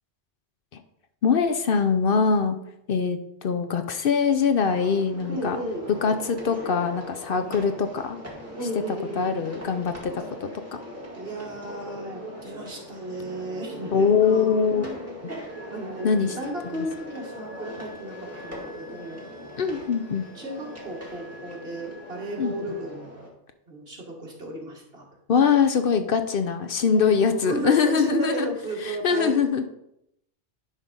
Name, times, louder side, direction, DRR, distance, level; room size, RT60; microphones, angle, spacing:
voice 1, 1.2-2.6 2.9-5.6 6.0-8.2 8.9-10.8 13.9-14.8 15.2-15.3 16.0-16.4 16.6-16.9 19.6-20.3 22.4-22.5 25.3-28.5 28.8-29.7, left 6 dB, 60° left, 8 dB, 0.8 m, -23 dB
sound 1, 4.6-23.3, equal, 15° right, 1.9 m, -40 dB
voice 2, 5.3-5.9 8.5-9.3 11.1-15.2 15.7-16.1 16.4-19.2 19.6-19.8 20.4-23.2 23.7-25.1 27.0-29.4, right 1 dB, 60° right, -1 dB, 2.0 m, -33 dB
Wind instrument woodwind instrument, 15.5-22.9, left 1 dB, 40° right, 1.9 m, -51 dB
10.5 x 3.7 x 5.3 m, 0.79 s
omnidirectional pair, 1.1 m